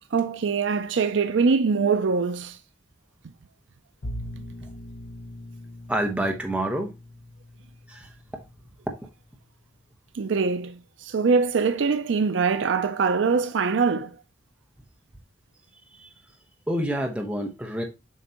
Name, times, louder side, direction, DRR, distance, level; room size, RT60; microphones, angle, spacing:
voice 1, 0.1-2.6 10.1-14.2, right 5 dB, 75° right, 0.5 m, -23 dB
Bowed string instrument, 4.0-9.1, left 1 dB, 60° left, 0.9 m, -41 dB
voice 2, 5.9-6.9 7.9-8.1 16.0-16.1 16.7-17.8, right 1 dB, 5° right, 1.1 m, -27 dB
7.6 x 5.1 x 2.9 m
head